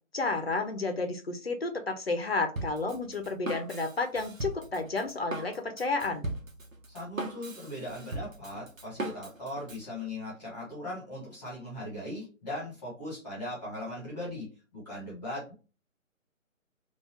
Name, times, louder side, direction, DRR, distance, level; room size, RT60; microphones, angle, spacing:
voice 1, 0.1-6.3, left 3 dB, 50° left, 7 dB, 0.6 m, -31 dB
Drum kit, 2.6-9.9, right 2 dB, 75° right, 1.0 m, -39 dB
voice 2, 6.9-15.5, left 1 dB, 10° left, -5 dB, 1.0 m, -39 dB
3.9 x 2.4 x 2.8 m, 0.33 s
figure-of-eight pair, 145°, 40 cm